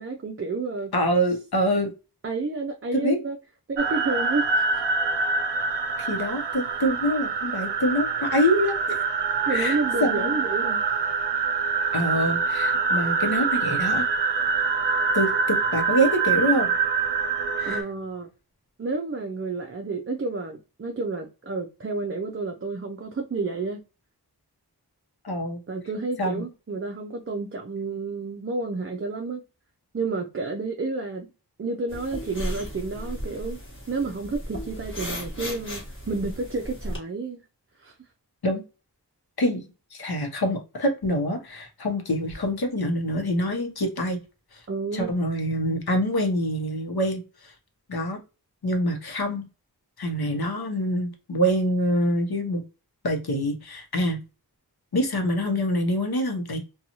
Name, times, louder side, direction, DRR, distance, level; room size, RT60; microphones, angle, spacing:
voice 1, 0.0-0.9 2.2-3.4 3.7-4.8 9.5-10.8 17.7-18.3 18.8-23.8 25.7-29.4 29.9-31.3 31.6-33.6 33.9-37.4 37.8-37.9 44.7-45.1, right 3 dB, 35° right, 0.4 m, -30 dB
voice 2, 0.9-1.9 2.9-3.2 6.0-8.8 9.5-10.4 11.9-14.1 15.1-16.7 17.6-17.8 25.2-25.6 26.2-26.3 38.4-38.6 39.4-39.6 39.9-44.2 44.5-44.6 44.9-47.5 47.9-48.2 48.6-49.4 50.0-52.6 53.0-54.2 54.9-56.6, equal, 65° left, 0.8 m, -25 dB
sound 1, 3.8-17.8, right 4 dB, 85° right, 0.5 m, -25 dB
sound 2, 31.9-37.0, equal, 30° left, 1.2 m, -35 dB
2.6 x 2.3 x 2.8 m
wide cardioid pair, 50°, 40 cm